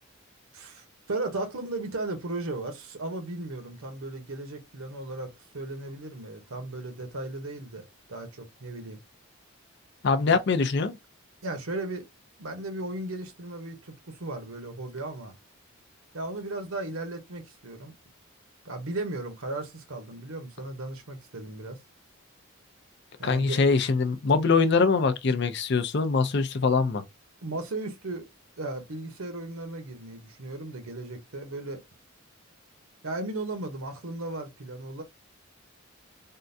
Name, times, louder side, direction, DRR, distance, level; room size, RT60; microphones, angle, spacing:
voice 1, 0.5-9.0 10.3-10.4 11.4-12.1 12.4-15.4 16.1-17.9 18.6-21.8 23.2-23.6 27.4-28.3 28.6-31.8 33.0-35.0, right 2 dB, 70° right, 0.9 m, -36 dB
voice 2, 10.0-11.0 23.2-27.0, left 4 dB, 50° left, 0.5 m, -23 dB
3.7 x 2.2 x 2.6 m
head